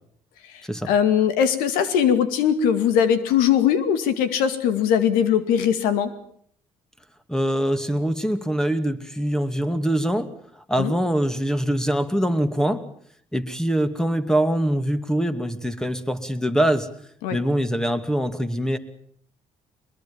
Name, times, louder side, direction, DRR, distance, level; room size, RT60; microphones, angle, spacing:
voice 1, 0.5-6.1 10.8-10.9 17.2-17.4, left 8 dB, 90° left, 11 dB, 2.3 m, -20 dB
voice 2, 7.3-10.3 10.7-12.8 13.3-16.9 17.3-18.8, right 1 dB, 5° left, 9 dB, 2.6 m, -23 dB
23.0 x 21.5 x 7.3 m, 0.63 s
supercardioid pair, 70°, 14 cm